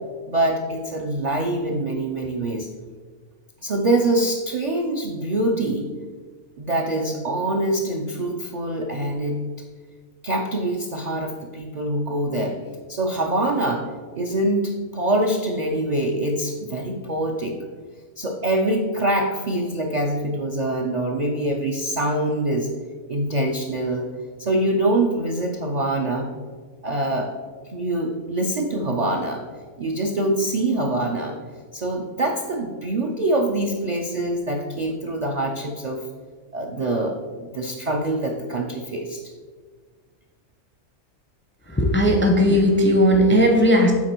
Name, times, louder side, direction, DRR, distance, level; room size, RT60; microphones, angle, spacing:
voice 1, 0.3-2.7 3.6-5.9 6.6-9.4 10.2-12.6 12.9-13.8 14.1-17.6 18.2-22.7 23.1-24.1 24.4-26.3 26.8-27.3 27.7-29.4 29.8-31.4 31.7-36.0 36.5-39.2, right 1 dB, 55° right, 1 dB, 0.4 m, -24 dB
voice 2, 41.7-43.9, equal, 15° left, 2 dB, 0.4 m, -17 dB
8.6 x 4.0 x 4.4 m, 1.6 s
omnidirectional pair, 1.5 m